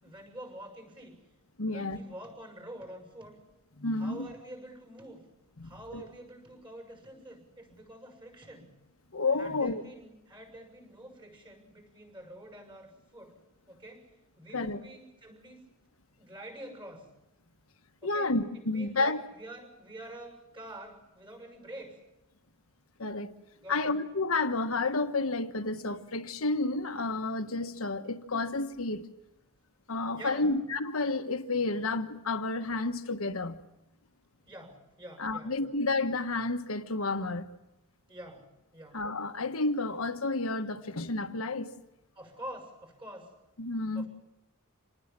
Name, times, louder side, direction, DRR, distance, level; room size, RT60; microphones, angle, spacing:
voice 1, 0.0-1.2 1.6-3.4 3.9-5.3 5.6-8.7 9.4-13.4 13.7-15.6 16.2-17.1 18.0-18.3 18.7-22.0 23.6-24.0 30.1-30.5 34.5-35.7 38.1-39.0 42.1-43.3 43.9-44.1, right 1 dB, 25° right, 6.5 m, -47 dB
voice 2, 1.6-2.0 3.8-4.3 5.6-6.1 9.1-9.8 14.5-14.8 18.0-19.2 23.0-23.3 23.7-29.0 29.9-33.6 35.2-37.5 38.9-41.7 43.6-44.0, left 3 dB, 70° left, 1.4 m, -31 dB
27.0 x 19.5 x 7.6 m
head